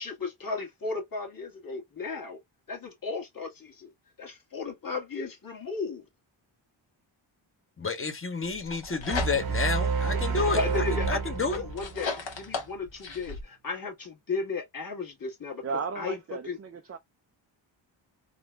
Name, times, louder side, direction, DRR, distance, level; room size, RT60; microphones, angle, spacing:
voice 1, 0.0-2.4 2.7-3.9 4.2-6.0 10.1-15.6 15.9-16.2 16.4-16.6, left 4 dB, 45° left, 1.6 m, -35 dB
voice 2, 7.8-11.6, left 4 dB, 25° left, 0.9 m, -30 dB
sound 1, 8.5-9.7 10.2-13.4, left 4 dB, 65° left, 1.3 m, -37 dB
sound 2, 9.1-12.4, right 5 dB, 50° right, 0.9 m, -29 dB
voice 3, 15.6-17.0, right 5 dB, 30° right, 0.4 m, -35 dB
3.7 x 2.3 x 2.3 m
cardioid pair, 60°, 48 cm